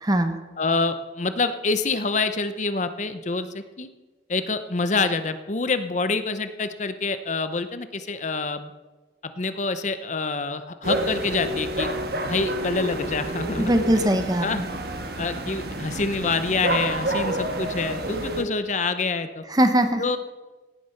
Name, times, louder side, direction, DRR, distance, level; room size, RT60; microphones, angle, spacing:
voice 1, 0.0-0.4 13.6-14.7 19.5-20.0, right 1 dB, 20° right, 8 dB, 1.0 m, -21 dB
voice 2, 0.6-3.9 4.3-8.7 9.2-11.9 12.2-13.7 14.4-14.6 15.2-19.4 20.0-20.2, left 3 dB, 40° left, 11 dB, 0.7 m, -26 dB
sound 1, 10.8-18.4, right 1 dB, 60° right, 1.5 m, -29 dB
16.5 x 9.5 x 5.8 m, 1.2 s
head